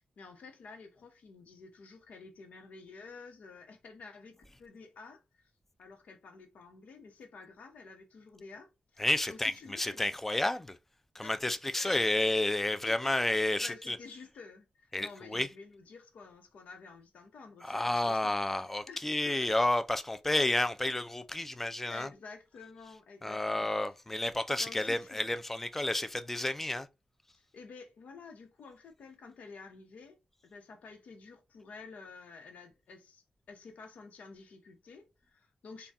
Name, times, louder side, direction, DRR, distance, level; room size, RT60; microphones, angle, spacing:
voice 1, 0.0-5.5 5.8-10.0 11.2-11.5 11.7-12.0 12.8-13.3 13.6-18.3 18.9-19.1 21.9-23.7 24.5-25.4 27.3-30.2 30.4-35.9, left 4 dB, 85° left, 0.9 m, -51 dB
voice 2, 9.0-10.8 11.2-14.0 14.9-15.5 17.6-22.1 23.2-26.9, left 1 dB, 10° left, 0.3 m, -31 dB
4.0 x 2.3 x 3.5 m
wide cardioid pair, 170°, 2 cm